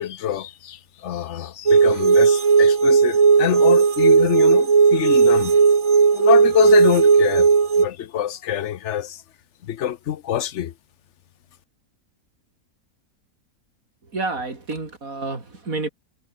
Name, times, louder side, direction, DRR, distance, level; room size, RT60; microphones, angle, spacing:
voice 1, 0.0-5.6 6.1-7.5 7.8-9.2 9.6-10.7, left 10 dB, 60° left, 1.0 m, -25 dB
sound 1, 1.7-7.9, right 5 dB, 45° right, 0.4 m, -15 dB
voice 2, 14.0-15.9, right 3 dB, 65° right, 4.2 m, -29 dB
omnidirectional pair, 1.6 m